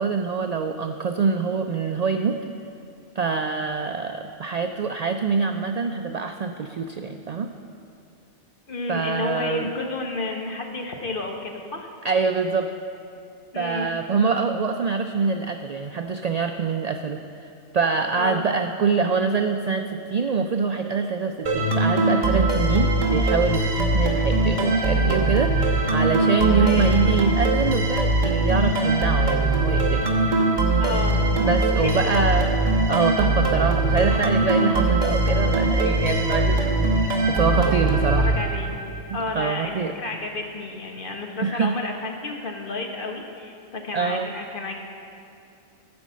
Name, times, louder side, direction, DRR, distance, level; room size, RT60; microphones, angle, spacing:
voice 1, 0.0-2.4 3.2-7.5 8.9-9.7 12.0-12.7 13.5-30.0 31.4-38.3 39.3-39.9 41.4-41.8 43.9-44.3, right 5 dB, 80° right, 5 dB, 0.3 m, -25 dB
voice 2, 8.7-11.9 13.5-13.9 18.1-18.4 26.5-27.0 30.8-31.2 31.8-32.3 37.6-38.7 39.1-44.8, left 3 dB, 50° left, 2 dB, 1.2 m, -31 dB
sound 1, 21.5-39.0, right 2 dB, 40° right, 1.2 m, -21 dB
14.0 x 5.3 x 7.3 m, 2.6 s
omnidirectional pair, 1.2 m